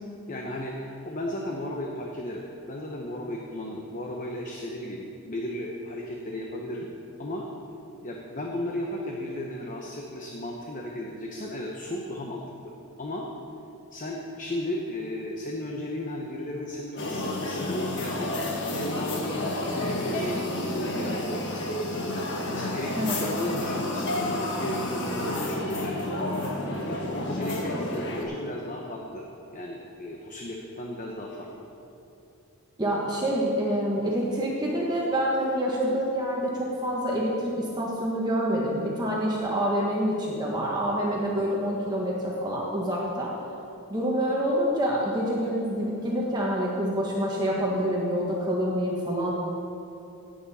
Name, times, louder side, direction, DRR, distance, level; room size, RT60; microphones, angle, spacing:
voice 1, 0.3-0.8 1.0-6.9 7.2-7.5 8.0-12.4 13.0-13.3 13.9-18.3 18.7-21.8 22.5-26.0 26.2-29.2 29.5-31.5, left 1 dB, 35° left, -1 dB, 1.0 m, -35 dB
sound 1, 17.0-28.2, left 1 dB, 55° left, 1.5 m, -30 dB
voice 2, 23.0-23.4 32.8-43.3 43.9-49.3, equal, 20° right, -4 dB, 1.4 m, -27 dB
17.0 x 8.8 x 4.3 m, 2.8 s
head